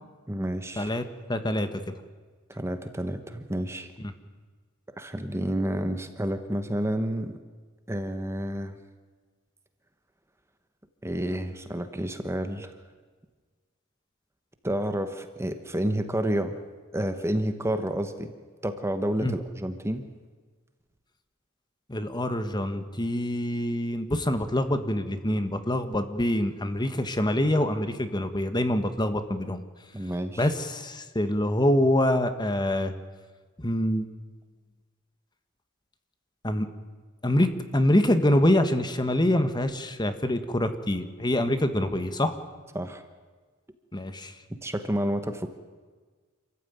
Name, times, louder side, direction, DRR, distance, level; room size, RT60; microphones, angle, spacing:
voice 1, 0.3-0.9 2.5-3.9 5.0-7.4 7.9-8.8 11.0-12.7 14.6-16.6 16.9-18.3 18.6-20.1 29.9-30.5 42.7-43.0 44.5-45.5, right 1 dB, 15° right, 8 dB, 1.2 m, -30 dB
voice 2, 1.3-1.8 19.2-19.3 21.9-29.6 30.4-32.9 33.6-34.1 36.4-36.7 37.2-42.4 43.9-44.3, left 1 dB, 20° left, 9 dB, 1.5 m, -25 dB
27.5 x 15.0 x 9.5 m, 1.4 s
head